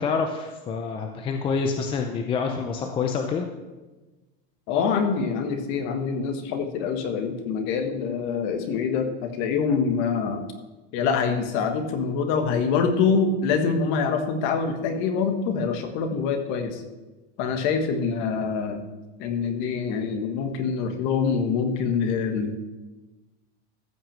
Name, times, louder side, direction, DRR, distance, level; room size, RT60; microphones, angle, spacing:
voice 1, 0.0-3.4, left 5 dB, 15° left, 4 dB, 0.6 m, -27 dB
voice 2, 4.7-10.4 10.9-16.8 17.4-18.8 19.2-22.6, left 5 dB, 40° left, 6 dB, 1.5 m, -25 dB
14.5 x 6.0 x 7.4 m, 1.2 s
supercardioid pair, 170°, 31 cm